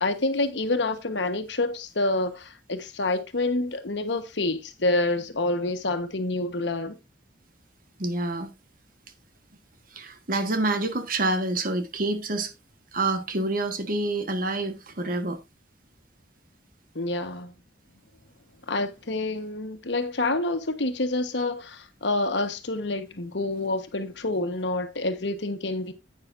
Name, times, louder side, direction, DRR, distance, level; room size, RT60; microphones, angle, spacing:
voice 1, 0.0-7.0 16.9-17.5 18.7-25.9, left 2 dB, 70° left, 1.3 m, -27 dB
voice 2, 8.0-8.5 9.9-12.5 12.9-15.4, right 2 dB, 50° right, 1.4 m, -27 dB
10.5 x 8.8 x 2.6 m
head